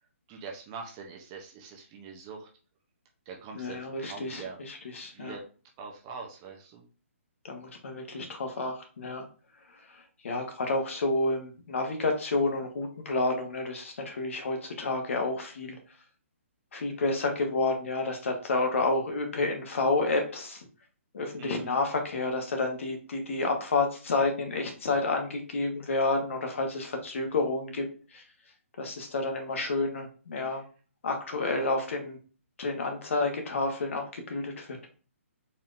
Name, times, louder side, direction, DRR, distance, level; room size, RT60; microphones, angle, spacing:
voice 1, 0.3-2.5 3.3-4.6 5.1-5.4 5.8-6.8 21.4-21.8 30.4-30.6, right 5 dB, 25° right, 2 dB, 0.6 m, -43 dB
voice 2, 3.5-5.4 7.4-9.2 10.2-15.7 16.7-20.6 21.1-27.8 28.1-28.2 28.8-30.6 31.0-32.2 32.6-34.7, left 3 dB, 65° left, 4 dB, 1.2 m, -30 dB
4.3 x 3.6 x 2.5 m, 0.37 s
hypercardioid pair, 160°, 8 cm